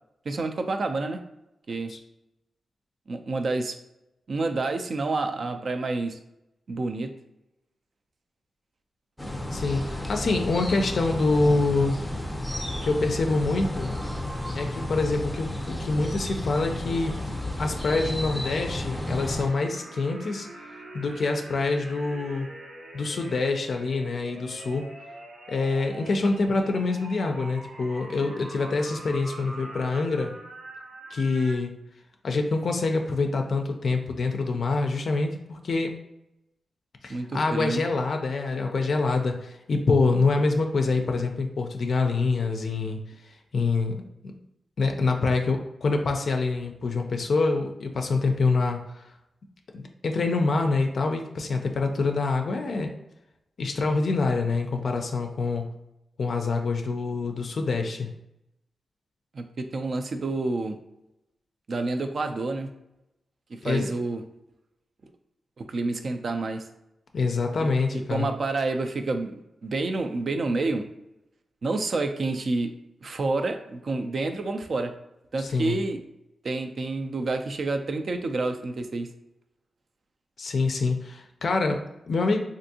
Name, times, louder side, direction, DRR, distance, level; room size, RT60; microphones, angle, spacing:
voice 1, 0.3-1.2 1.7-1.9 3.1-3.8 4.3-6.2 6.7-7.1 37.1-37.8 59.3-60.8 61.7-62.7 63.5-64.2 65.6-66.6 67.6-70.9 71.6-72.7 73.0-74.9 75.3-76.0 76.4-79.1, right 3 dB, 55° right, 7 dB, 0.3 m, -29 dB
sound 1, 9.2-19.5, left 1 dB, 5° left, 0.6 m, -32 dB
voice 2, 9.5-12.0 12.8-13.9 14.5-17.1 17.6-20.5 20.9-22.5 22.9-24.9 25.5-30.4 31.1-31.8 32.2-35.9 37.0-43.0 43.5-44.0 44.2-44.3 44.8-49.0 49.7-52.9 53.6-55.7 56.2-58.1 63.6-63.9 67.1-68.3 75.4-75.8 80.4-82.4, left 3 dB, 60° left, 4 dB, 0.3 m, -26 dB
sound 2, 18.2-31.6, right 1 dB, 85° right, 0.7 m, -44 dB
3.5 x 2.5 x 2.7 m, 0.87 s
wide cardioid pair, 105°, 0 cm